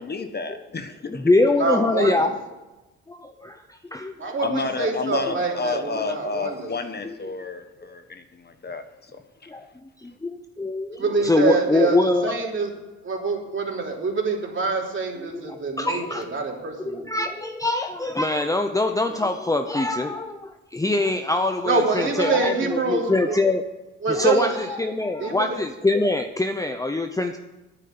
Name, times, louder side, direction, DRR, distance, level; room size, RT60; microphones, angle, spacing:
voice 1, 0.0-1.3 4.4-9.1 9.4-9.5, left 4 dB, 35° left, 7 dB, 1.2 m, -31 dB
voice 2, 1.1-2.3 3.1-4.1 7.0-7.1 9.5-9.7 10.0-12.5 15.2-16.2 16.8-23.6 24.1-27.4, left 2 dB, 10° left, 6 dB, 0.8 m, -24 dB
voice 3, 1.6-2.3 4.2-6.7 11.0-12.0 12.2-12.7 13.0-17.1 21.6-23.4 24.0-24.6 25.2-25.5, right 4 dB, 40° right, 0 dB, 3.3 m, -25 dB
9.7 x 9.1 x 8.8 m, 1.0 s
cardioid pair, 90°, 30 cm